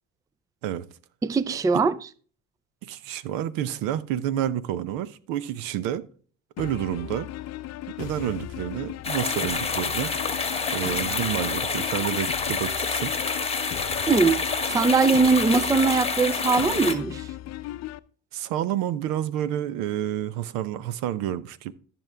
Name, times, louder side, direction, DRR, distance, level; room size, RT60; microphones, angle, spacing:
voice 1, 1.2-2.0 14.1-17.3, right 4 dB, 10° right, 0.4 m, -21 dB
voice 2, 2.8-6.0 6.6-7.3 8.0-10.1 10.7-13.1 18.3-21.7, right 11 dB, 70° right, 0.8 m, -29 dB
sound 1, 6.6-18.0, left 13 dB, 50° left, 0.6 m, -37 dB
sound 2, 9.0-16.9, left 4 dB, 15° left, 1.2 m, -28 dB
14.5 x 6.1 x 3.5 m
supercardioid pair, 80°, 35 cm